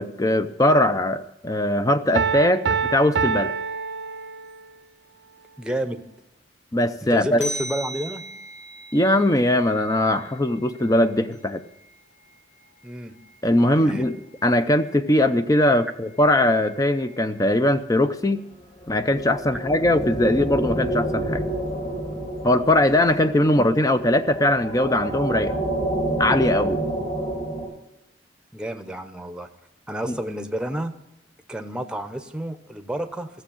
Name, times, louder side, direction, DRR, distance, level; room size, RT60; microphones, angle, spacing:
voice 1, 0.0-2.6 2.9-3.5 6.7-7.4 8.9-11.6 13.4-18.4 18.9-21.4 22.4-25.5 26.2-26.8, left 1 dB, 20° left, 10 dB, 0.6 m, -20 dB
Piano, 2.1-4.7, right 5 dB, 70° right, 0.5 m, -26 dB
sound 1, 3.0-4.5 7.4-17.4, right 1 dB, 85° left, 6.6 m, -42 dB
voice 2, 5.6-6.0 7.0-8.2 12.8-13.1 13.8-14.0 28.5-29.5 29.9-30.9 31.5-33.3, right 1 dB, 5° right, 7 dB, 0.9 m, -30 dB
sound 2, 18.8-27.7, right 1 dB, 40° left, 3.3 m, -28 dB
14.5 x 7.3 x 8.6 m, 0.85 s
head